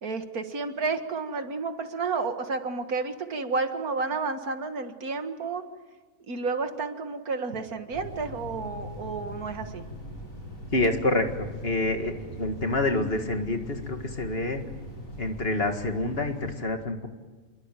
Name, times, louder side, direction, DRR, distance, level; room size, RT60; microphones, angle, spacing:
voice 1, 0.0-5.6 6.3-9.8, right 4 dB, 80° right, 7 dB, 2.2 m, -31 dB
sound 1, 7.9-16.5, equal, 60° left, 6.9 m, -41 dB
voice 2, 10.7-14.6 15.2-17.1, left 2 dB, 40° left, 6 dB, 2.1 m, -27 dB
27.5 x 22.5 x 9.2 m, 1.3 s
omnidirectional pair, 1.5 m